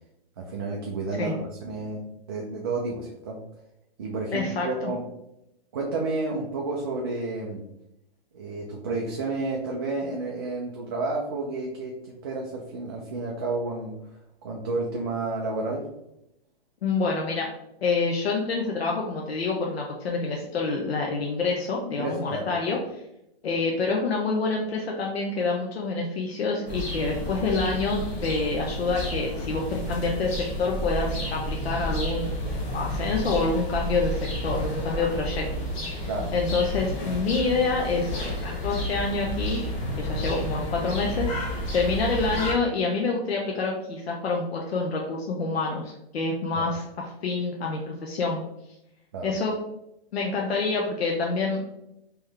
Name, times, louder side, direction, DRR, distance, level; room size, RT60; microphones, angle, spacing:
voice 1, 0.4-3.4 4.0-5.0 5.7-7.6 8.3-15.9 22.0-22.5 36.1-36.3 46.5-46.7 49.1-49.3, right 3 dB, 25° right, -2 dB, 0.3 m, -31 dB
voice 2, 4.3-4.9 16.8-17.5 17.8-22.8 23.4-32.3 32.7-35.4 35.9-39.6 40.0-48.4 49.2-49.6 50.1-51.6, left 3 dB, 90° left, -1 dB, 0.8 m, -27 dB
sound 1, 26.7-42.5, left 1 dB, 30° left, 1.0 m, -31 dB
3.7 x 3.0 x 3.2 m, 0.83 s
hypercardioid pair, 160°, 30 cm